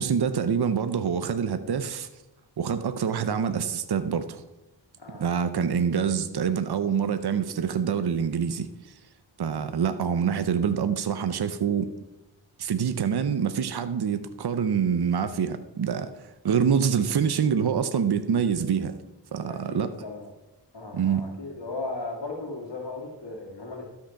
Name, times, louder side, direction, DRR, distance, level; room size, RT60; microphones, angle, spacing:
voice 1, 0.0-2.1 2.6-4.4 5.2-8.7 9.4-11.9 12.6-16.1 16.4-19.0 19.3-19.9 20.9-21.3, right 7 dB, 60° right, 10 dB, 0.7 m, -26 dB
voice 2, 19.4-20.3 20.7-23.9, left 3 dB, 75° left, 0 dB, 2.1 m, -36 dB
12.5 x 5.8 x 5.8 m, 0.96 s
wide cardioid pair, 70°, 43 cm